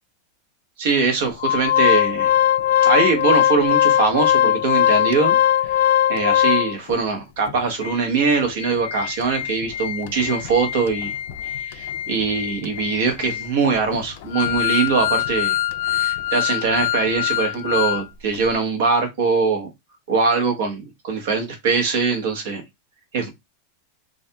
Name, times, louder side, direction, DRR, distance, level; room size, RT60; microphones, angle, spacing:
voice 1, 0.8-2.3 2.8-5.4 5.6-5.8 6.1-11.1 11.4-15.6 15.9-19.7 20.1-22.6 23.1-23.3, right 4 dB, 65° right, 1.0 m, -22 dB
Organ, 1.4-6.9 7.5-7.6 7.8-8.0 8.4-18.0 18.3-18.5, left 11 dB, 60° left, 0.3 m, -21 dB
2.7 x 2.5 x 2.2 m
supercardioid pair, 150°, 0 cm